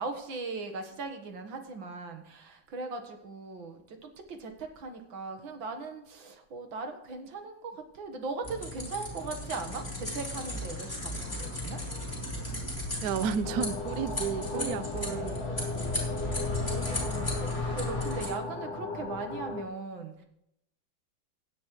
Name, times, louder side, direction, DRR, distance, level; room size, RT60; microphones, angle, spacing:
voice 1, 0.0-11.8 14.5-14.8 15.1-20.3, right 4 dB, 85° right, 5 dB, 2.2 m, -39 dB
sound 1, 8.4-18.3, left 1 dB, 15° left, 4.4 m, -35 dB
voice 2, 13.0-15.5, right 7 dB, 65° right, 13 dB, 1.0 m, -32 dB
sound 2, 13.4-19.6, left 4 dB, 60° left, 1.6 m, -36 dB
16.5 x 9.4 x 3.1 m, 0.77 s
omnidirectional pair, 2.1 m